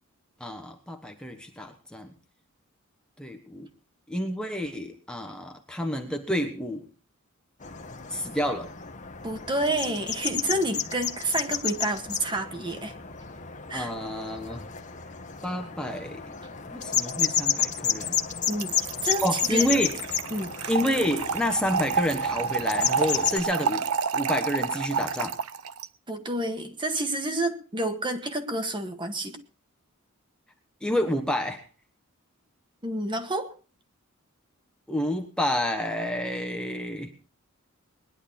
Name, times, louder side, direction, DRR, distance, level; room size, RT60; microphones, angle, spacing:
voice 1, 0.4-2.1 3.2-3.7 4.1-6.9 8.1-8.7 13.7-14.7 15.4-16.2 16.7-18.2 19.2-20.0 20.7-25.4 30.8-31.6 34.9-37.1, equal, 5° left, 4 dB, 1.3 m, -29 dB
sound 1, 7.6-23.4, left 8 dB, 35° left, 1.4 m, -32 dB
voice 2, 9.2-12.9 13.7-13.9 18.5-18.8 19.0-19.2 19.5-19.7 20.3-20.6 26.1-29.4 32.8-33.5, right 1 dB, 20° right, 7 dB, 1.8 m, -29 dB
Trickle dribble / Fill (with liquid), 18.5-25.9, right 6 dB, 85° right, 0.7 m, -29 dB
20.5 x 11.0 x 4.3 m, 0.35 s
head